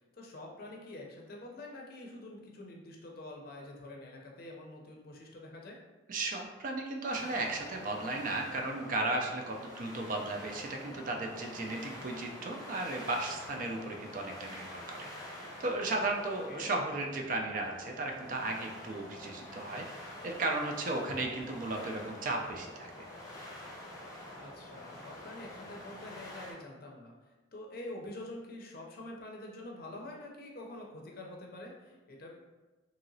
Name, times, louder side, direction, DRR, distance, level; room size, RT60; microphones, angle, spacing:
voice 1, 0.1-5.8 16.5-16.7 24.3-27.2 27.5-32.4, left 1 dB, 55° left, -1 dB, 0.5 m, -46 dB
voice 2, 6.1-15.1 15.6-19.8 20.2-22.9, right 2 dB, 45° right, 2 dB, 0.4 m, -35 dB
sound 1, 7.1-26.5, left 1 dB, 20° left, 0.7 m, -47 dB
2.9 x 2.8 x 2.6 m, 1.2 s
head